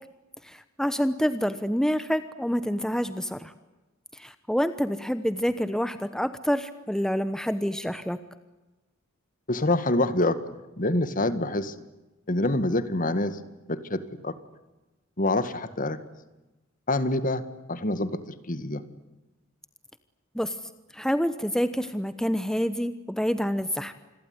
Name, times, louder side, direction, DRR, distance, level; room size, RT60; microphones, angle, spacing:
voice 1, 0.4-3.5 4.1-8.2 20.3-20.6 20.9-23.9, equal, 5° left, 12 dB, 1.0 m, -27 dB
voice 2, 9.5-10.4 10.8-11.7 12.3-13.4 13.7-14.3 15.2-16.0 16.9-17.4 17.7-18.2 18.5-18.8, left 2 dB, 40° left, 13 dB, 1.9 m, -26 dB
28.0 x 21.5 x 9.6 m, 1.1 s
head